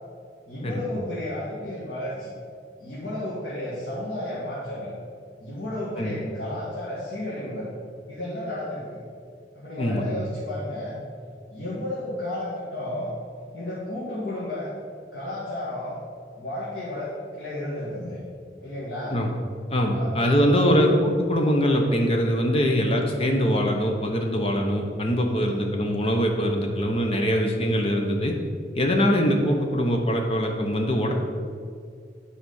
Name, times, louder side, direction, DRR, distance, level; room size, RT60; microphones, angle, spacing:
voice 1, 0.5-2.3 2.8-4.9 5.4-7.7 8.1-9.0 9.6-11.0 11.5-13.1 13.5-14.7 15.1-16.0 16.4-18.2 18.6-19.2 19.9-20.8 25.3-25.6, left 1 dB, 80° left, -9 dB, 2.0 m, -32 dB
voice 2, 9.8-10.1 19.1-19.3 19.7-28.3 28.7-31.1, equal, 35° left, 2 dB, 1.0 m, -23 dB
9.1 x 4.9 x 5.6 m, 2.3 s
head